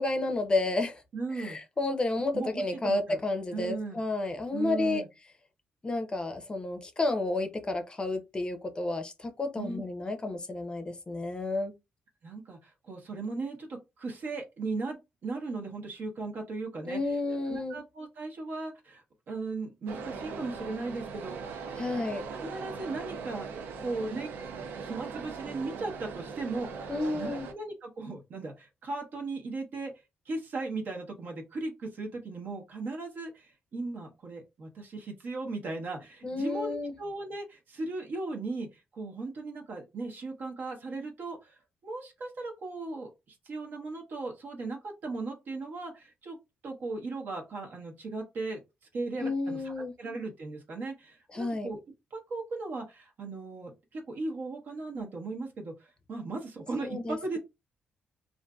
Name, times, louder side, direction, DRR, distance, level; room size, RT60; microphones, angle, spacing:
voice 1, 0.0-1.0 1.4-5.0 5.8-11.7 16.9-17.8 21.8-22.2 26.9-27.5 36.2-36.9 49.2-49.9 51.3-51.7 56.8-57.4, left 2 dB, 25° left, 0.5 m, -31 dB
voice 2, 1.1-1.6 2.3-3.2 3.5-4.0 4.5-5.1 9.6-9.8 12.2-17.0 17.5-21.6 22.3-23.5 23.8-24.3 24.8-29.9 30.3-46.4 46.6-48.6 48.9-49.6 50.0-51.8 52.1-57.4, right 3 dB, 65° right, 0.9 m, -37 dB
sound 1, 19.9-27.5, right 5 dB, 85° right, 0.4 m, -40 dB
2.5 x 2.5 x 2.2 m
cardioid pair, 90°, 3 cm